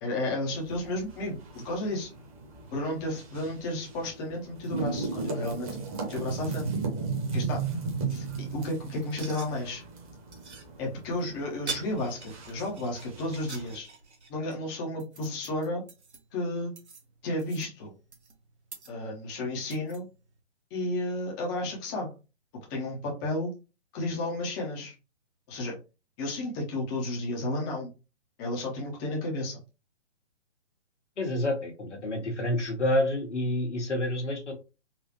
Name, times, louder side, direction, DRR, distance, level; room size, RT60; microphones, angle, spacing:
voice 1, 0.0-2.1 2.7-5.8 6.1-6.7 7.3-7.7 8.1-9.8 10.8-13.9 14.3-15.8 16.3-16.7 17.2-17.9 18.9-20.1 20.7-22.1 22.7-23.5 23.9-24.9 25.5-25.8 26.2-27.9 28.4-29.6, left 1 dB, 20° left, -1 dB, 0.8 m, -32 dB
sound 1, 0.5-13.7, right 4 dB, 30° right, 1.2 m, -36 dB
sound 2, 9.0-20.4, right 4 dB, 70° right, 1.4 m, -46 dB
voice 2, 31.2-34.5, left 1 dB, 80° left, 3 dB, 1.5 m, -28 dB
4.1 x 2.4 x 3.0 m, 0.30 s
figure-of-eight pair, 140°, 35 cm